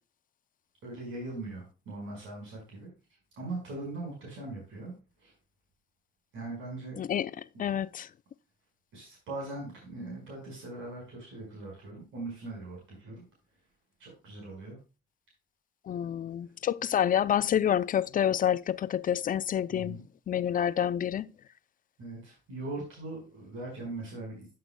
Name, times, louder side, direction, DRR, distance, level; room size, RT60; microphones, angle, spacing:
voice 1, 0.8-2.9 3.4-4.9 5.2-5.3 6.3-7.0 7.5-7.6 8.9-13.2 14.0-14.8 19.7-20.0 22.0-24.5, right 2 dB, 80° right, 4.9 m, -40 dB
voice 2, 7.0-7.3 7.6-8.1 15.9-20.0 20.3-21.3, left 9 dB, 45° left, 0.5 m, -28 dB
11.5 x 7.9 x 2.2 m
cardioid pair, 90°, 20 cm